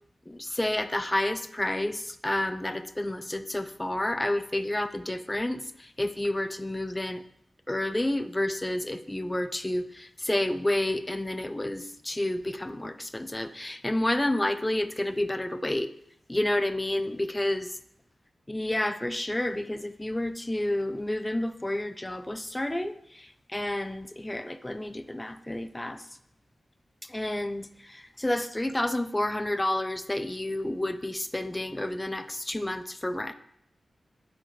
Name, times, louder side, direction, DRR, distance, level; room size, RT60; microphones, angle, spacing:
voice 1, 0.3-7.2 7.7-15.9 16.3-17.7 18.5-26.0 27.1-33.3, left 1 dB, 10° left, 11 dB, 0.3 m, -30 dB
8.6 x 5.0 x 3.0 m, 0.71 s
wide cardioid pair, 155°, 0 cm